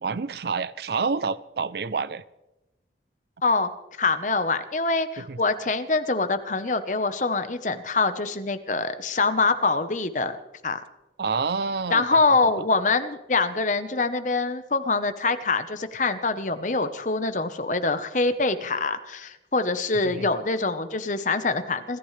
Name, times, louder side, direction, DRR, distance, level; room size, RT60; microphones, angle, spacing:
voice 1, 0.0-2.2 5.2-5.4 11.2-12.2 20.0-20.3, right 4 dB, 60° right, 16 dB, 0.5 m, -28 dB
voice 2, 4.0-10.4 10.6-10.8 11.9-22.0, left 3 dB, 45° left, 10 dB, 1.0 m, -24 dB
27.5 x 14.0 x 3.3 m, 0.99 s
head